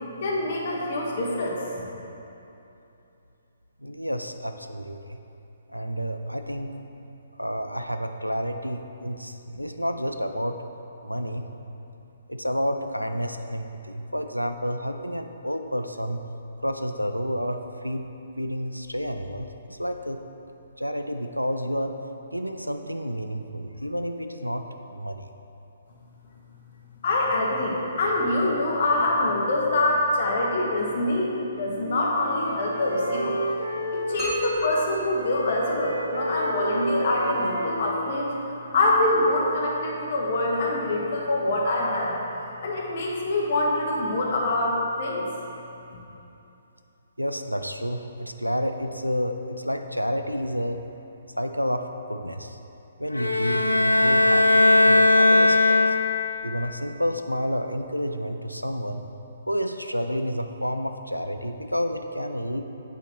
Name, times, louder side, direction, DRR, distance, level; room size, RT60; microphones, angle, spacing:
voice 1, 0.2-1.9 27.0-33.4 33.9-38.3 38.7-42.2 42.6-45.3, left 2 dB, 45° left, -2 dB, 1.0 m, -25 dB
voice 2, 3.8-5.2 5.7-6.7 7.4-10.6 11.0-11.5 12.3-16.2 16.6-18.1 18.4-20.2 20.8-21.9 22.3-24.6 24.9-25.2 47.2-50.8 51.4-52.6 53.0-56.0 56.4-59.0 59.5-62.6, equal, 90° right, 7 dB, 0.3 m, -30 dB
Wind instrument woodwind instrument, 31.3-34.8 35.1-39.1, right 1 dB, 65° right, 0.7 m, -32 dB
sound 1, 34.2-36.1, equal, 15° right, 1.4 m, -33 dB
sound 2, 53.1-56.4, left 2 dB, 80° left, 0.3 m, -18 dB
8.3 x 2.9 x 4.2 m, 2.9 s
figure-of-eight pair, 130°, 0 cm